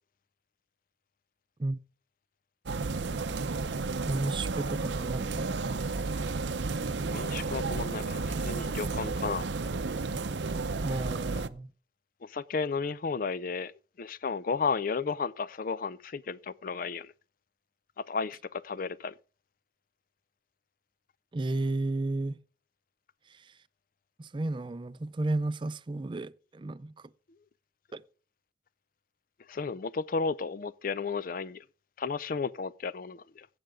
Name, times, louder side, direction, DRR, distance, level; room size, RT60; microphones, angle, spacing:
sound 1, 2.7-11.5, right 3 dB, 80° right, 0.7 m, -32 dB
voice 1, 4.1-5.8 10.8-11.7 21.3-22.4 23.3-23.6 24.2-27.1 27.9-28.0, right 2 dB, 25° right, 0.4 m, -33 dB
voice 2, 7.0-9.5 12.2-13.7 14.0-17.1 18.0-19.1 29.5-31.6 32.0-33.5, left 4 dB, 50° left, 0.4 m, -33 dB
16.0 x 7.9 x 3.6 m
head